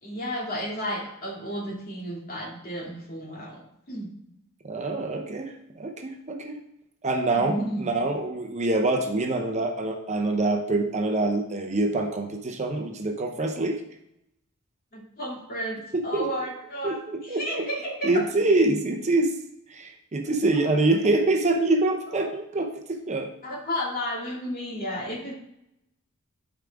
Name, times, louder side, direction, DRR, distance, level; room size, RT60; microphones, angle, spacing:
voice 1, 0.0-3.6 3.9-4.1 7.2-7.9 14.9-17.0 17.2-18.2 20.6-21.0 22.1-22.3 23.4-25.3, equal, 45° left, -3 dB, 2.5 m, -32 dB
voice 2, 4.6-6.6 7.0-7.5 7.8-13.8 16.1-16.3 16.8-17.6 18.0-19.3 19.7-23.3, right 2 dB, 35° right, 4 dB, 0.8 m, -25 dB
11.5 x 4.9 x 3.5 m, 0.81 s
head